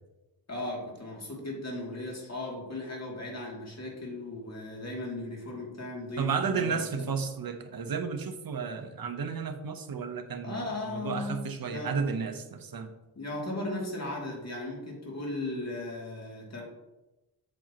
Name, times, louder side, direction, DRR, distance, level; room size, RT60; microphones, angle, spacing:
voice 1, 0.5-6.8 10.4-11.4 11.7-11.9 13.2-16.6, left 2 dB, 35° left, -2 dB, 2.6 m, -37 dB
voice 2, 6.2-12.9, right 5 dB, 55° right, 7 dB, 0.9 m, -33 dB
7.8 x 7.1 x 2.9 m, 1.0 s
cardioid pair, 75°, 42 cm